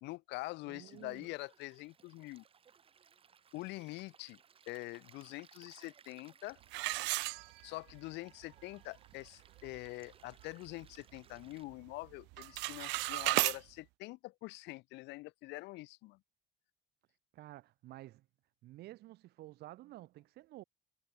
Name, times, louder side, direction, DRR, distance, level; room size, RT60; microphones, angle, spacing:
voice 1, 0.0-2.4 3.5-4.4 4.7-6.6 7.6-16.2, left 21 dB, 75° left, 0.6 m, -45 dB
Stream, 0.7-11.6, right 7 dB, 30° right, 4.3 m, -64 dB
voice 2, 0.7-1.3 17.3-18.3 18.6-20.6, right 16 dB, 65° right, 1.9 m, -52 dB
sound 1, 6.7-8.0 8.4-8.5 9.1-9.2 9.6-9.9 10.3-11.4 11.7-12.0 12.3-13.6, right 24 dB, 85° right, 0.4 m, -34 dB
cardioid pair, 150°, 18 cm